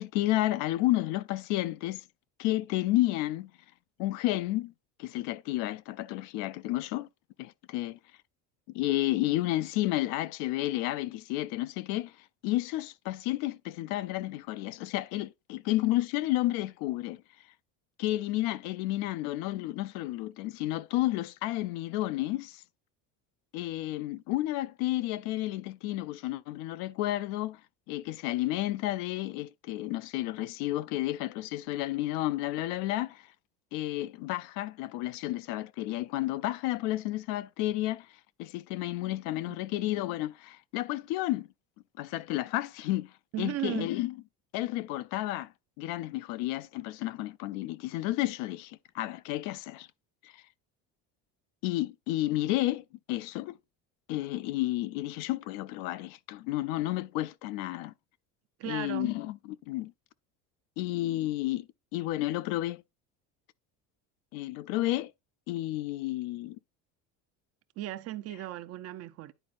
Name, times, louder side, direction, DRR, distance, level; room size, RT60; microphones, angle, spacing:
voice 1, 0.0-2.0 2.4-3.5 4.0-4.7 5.0-7.1 7.4-8.0 8.7-12.1 12.4-17.2 18.0-22.6 23.5-27.6 27.9-33.3 33.7-38.1 38.4-41.5 42.0-44.1 44.5-45.5 45.8-49.9 50.2-50.4 51.6-53.6 54.1-57.9 58.6-59.4 59.7-59.9 60.8-62.8 64.3-65.1 65.5-66.6, left 16 dB, 85° left, 0.5 m, -31 dB
voice 2, 43.3-43.9 58.6-59.1 67.8-69.3, right 14 dB, 50° right, 0.5 m, -36 dB
10.0 x 4.2 x 2.5 m
cardioid pair, 140°, 33 cm